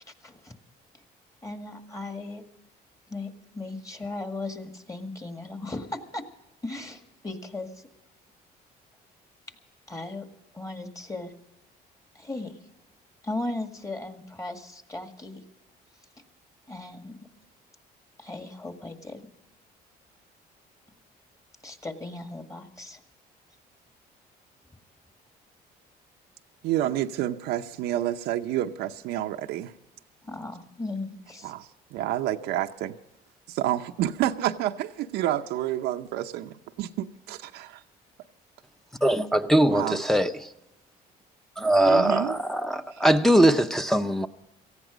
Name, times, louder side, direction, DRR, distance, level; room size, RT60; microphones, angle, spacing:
voice 1, 0.2-0.5 1.4-2.4 3.1-6.2 6.6-7.7 9.9-10.3 10.5-11.3 12.2-12.5 13.2-15.4 16.7-17.2 18.2-19.2 21.6-23.0 30.2-31.5, left 2 dB, 20° left, 1.8 m, -36 dB
voice 2, 26.6-29.7 31.4-32.9 33.5-37.8 39.7-40.0 41.8-42.4, right 13 dB, 90° right, 0.7 m, -29 dB
voice 3, 39.0-40.5 41.6-44.3, right 1 dB, ahead, 0.7 m, -21 dB
18.0 x 15.0 x 5.0 m
cardioid pair, 110°, 17 cm